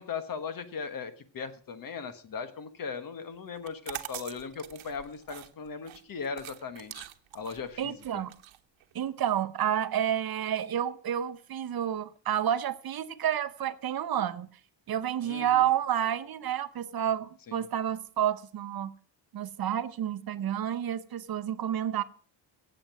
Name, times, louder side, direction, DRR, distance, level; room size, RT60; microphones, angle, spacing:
voice 1, 0.0-7.1 7.3-8.2 15.2-15.7 17.5-17.6, left 5 dB, 45° left, 1.3 m, -38 dB
sound 1, 3.6-9.3, right 13 dB, 80° right, 1.1 m, -44 dB
voice 2, 7.8-8.3 8.9-14.5 14.9-18.9 19.3-22.0, right 10 dB, 50° right, 0.8 m, -30 dB
16.5 x 7.7 x 6.0 m
cardioid pair, 145°, 46 cm